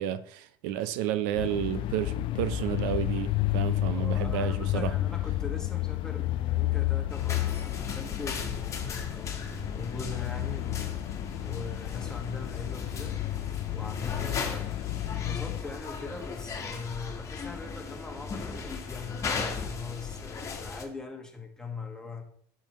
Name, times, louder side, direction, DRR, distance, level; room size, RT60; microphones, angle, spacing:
voice 1, 0.0-4.9, right 11 dB, 70° right, 0.6 m, -31 dB
sound 1, 1.3-15.6, left 15 dB, 50° left, 0.5 m, -31 dB
voice 2, 3.9-11.0 11.4-13.2 13.7-14.7 15.1-22.2, left 4 dB, 5° left, 1.7 m, -41 dB
sound 2, 7.1-20.8, left 5 dB, 25° left, 1.7 m, -37 dB
10.5 x 7.1 x 3.1 m
supercardioid pair, 105°, 11 cm